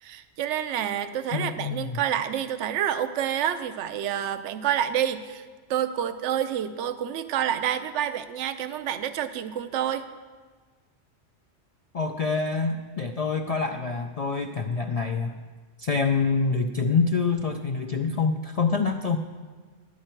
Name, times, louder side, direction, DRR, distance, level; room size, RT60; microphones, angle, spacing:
voice 1, 0.0-5.4 5.7-10.1, right 10 dB, 75° right, 11 dB, 0.9 m, -28 dB
voice 2, 1.3-2.0 11.9-15.4 15.8-19.2, left 4 dB, 60° left, 4 dB, 0.4 m, -26 dB
11.0 x 9.6 x 4.4 m, 1.5 s
omnidirectional pair, 1.2 m